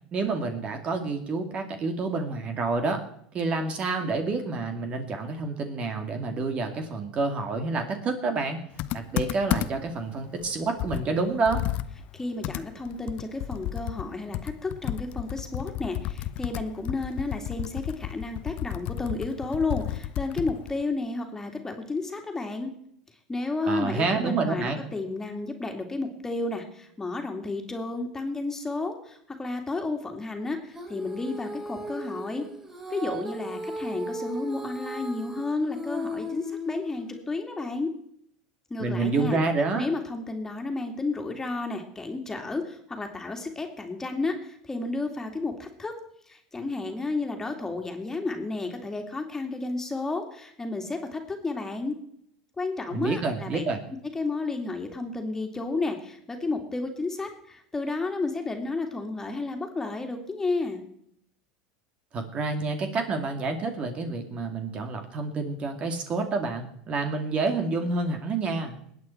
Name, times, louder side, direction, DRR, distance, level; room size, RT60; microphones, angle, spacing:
voice 1, 0.1-3.0 3.3-8.6 8.9-11.6 23.7-24.8 38.8-39.9 52.9-53.8 62.1-68.8, right 3 dB, 40° right, 6 dB, 2.4 m, -28 dB
Computer keyboard, 8.8-10.0 10.4-10.5 10.8-14.1 14.3-20.8, left 14 dB, 55° left, 0.7 m, -32 dB
voice 2, 12.1-22.7 23.3-32.5 32.9-37.9 38.7-39.4 39.7-45.9 46.3-52.0 52.6-53.6 54.1-60.8, left 3 dB, 15° left, 4 dB, 2.7 m, -32 dB
Female singing, 30.7-37.2, equal, 20° right, 7.0 m, -36 dB
20.0 x 8.8 x 4.6 m, 0.69 s
hypercardioid pair, 85°, 3 cm